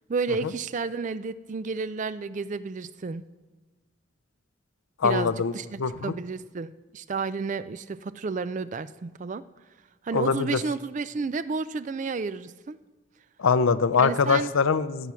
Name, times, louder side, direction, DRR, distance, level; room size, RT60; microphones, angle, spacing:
voice 1, 0.1-3.2 5.0-9.4 10.0-12.8 13.9-14.5, right 4 dB, 35° right, 15 dB, 0.3 m, -31 dB
voice 2, 5.0-5.5 5.8-6.1 10.1-10.6 13.4-15.1, left 5 dB, 80° left, 15 dB, 0.5 m, -23 dB
16.5 x 7.5 x 5.7 m, 1.2 s
head